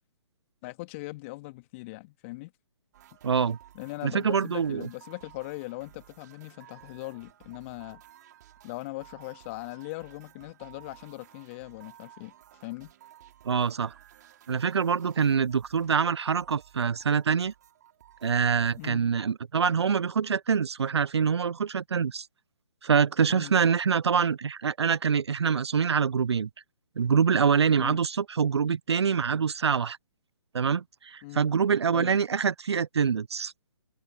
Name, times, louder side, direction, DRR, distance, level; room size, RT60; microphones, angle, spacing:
voice 1, 0.6-2.5 3.7-8.0 8.6-12.3 12.6-12.9 18.8-19.1 23.3-23.5 27.8-28.0 31.2-31.4 31.9-32.1, left 23 dB, 30° left, 1.9 m, -40 dB
sound 1, 2.9-18.9, right 12 dB, 40° right, 3.8 m, -55 dB
voice 2, 3.2-3.6 4.0-4.9 13.4-13.9 14.5-17.5 18.2-22.3 22.8-26.5 27.0-30.0 30.5-33.5, right 6 dB, 70° right, 0.4 m, -25 dB
figure-of-eight pair, 135°, 14 cm